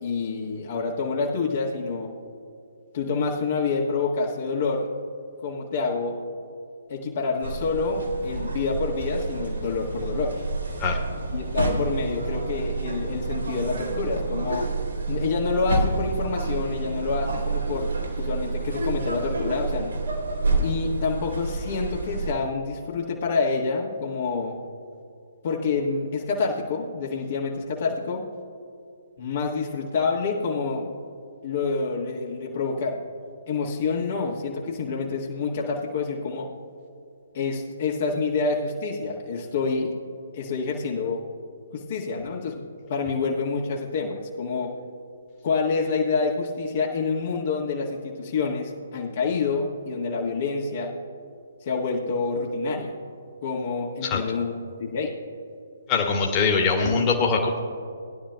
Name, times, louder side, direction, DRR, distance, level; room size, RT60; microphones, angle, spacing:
voice 1, 0.0-2.1 2.9-4.9 5.4-6.2 6.9-10.4 11.3-14.7 15.1-20.0 20.6-24.6 25.4-28.3 29.2-30.9 31.4-33.0 33.5-36.5 37.3-39.9 40.3-41.2 41.7-42.6 42.9-44.8 45.4-51.0 51.6-52.9 53.4-54.5 54.8-55.1, left 4 dB, 45° left, -2 dB, 1.5 m, -27 dB
sound 1, 7.4-22.3, right 3 dB, 70° right, 2.6 m, -29 dB
voice 2, 55.9-57.6, left 4 dB, 25° left, 0 dB, 1.7 m, -22 dB
20.0 x 11.5 x 2.3 m, 2.4 s
figure-of-eight pair, 130°, 0 cm